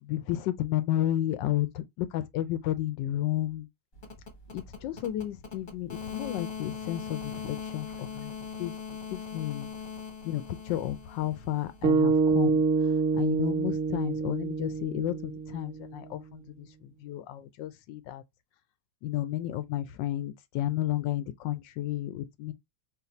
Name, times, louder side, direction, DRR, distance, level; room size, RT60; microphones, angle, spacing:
voice 1, 0.0-3.7 4.5-8.3 8.6-8.7 9.1-9.7 10.2-12.6 13.1-18.2 19.0-22.5, left 13 dB, 75° left, 1.2 m, -32 dB
sound 1, 3.9-11.8, left 6 dB, 35° left, 0.9 m, -41 dB
sound 2, 11.8-16.2, right 4 dB, 85° right, 0.6 m, -27 dB
4.0 x 2.3 x 4.0 m
omnidirectional pair, 2.1 m